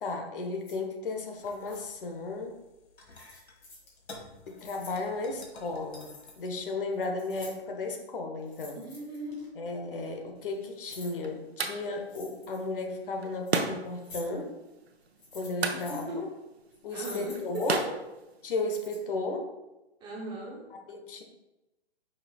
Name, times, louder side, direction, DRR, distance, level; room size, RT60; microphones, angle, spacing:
voice 1, 0.0-2.6 4.5-8.8 9.5-14.6 15.3-16.3 16.8-17.8 18.4-19.5 20.9-21.2, left 3 dB, 55° left, 3 dB, 1.2 m, -34 dB
sound 1, 0.6-0.7 1.4-1.8 3.1-3.9 4.4-5.0 5.6-6.4 6.8-7.8 8.4-9.5 10.3-11.1 12.0-12.7 13.2-13.6 14.0-14.2 15.0-16.0 16.7-17.8 18.6-19.0, left 3 dB, 25° left, 2.3 m, -49 dB
sound 2, 1.3-6.5, left 2 dB, 75° left, 1.4 m, -52 dB
voice 2, 8.8-9.5 15.9-16.2 16.9-17.8 20.0-20.7, right 1 dB, 15° right, -2 dB, 0.8 m, -38 dB
sound 3, 10.4-18.9, right 4 dB, 70° right, 0.9 m, -37 dB
7.9 x 5.8 x 2.4 m, 1.0 s
figure-of-eight pair, 130°, 33 cm